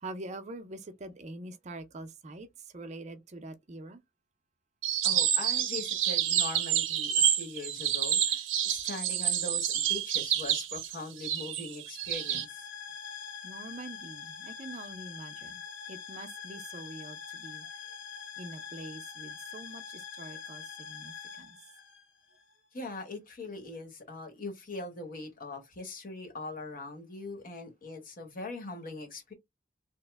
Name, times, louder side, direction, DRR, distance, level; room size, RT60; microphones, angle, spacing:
voice 1, 0.0-2.5 2.7-4.0 13.4-15.6 15.9-17.7 18.4-21.6, right 2 dB, 35° right, 0.5 m, -44 dB
sound 1, 4.8-12.5, right 9 dB, 80° right, 0.6 m, -28 dB
voice 2, 5.0-12.7 22.7-29.3, left 2 dB, 45° left, 1.0 m, -41 dB
sound 2, 12.0-22.5, left 7 dB, 75° left, 0.9 m, -44 dB
2.9 x 2.0 x 3.3 m
head